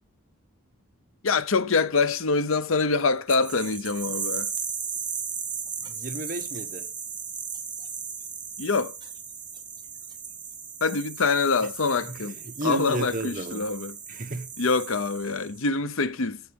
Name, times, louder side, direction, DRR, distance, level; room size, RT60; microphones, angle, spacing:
voice 1, 1.2-4.5 8.6-9.0 10.8-12.4 12.6-14.0 14.6-16.4, left 4 dB, 70° left, 0.8 m, -25 dB
sound 1, 3.3-15.6, right 6 dB, 20° right, 1.7 m, -36 dB
voice 2, 5.8-6.9 12.1-13.7 14.1-14.5, right 2 dB, 40° right, 1.3 m, -33 dB
15.0 x 5.9 x 5.3 m
head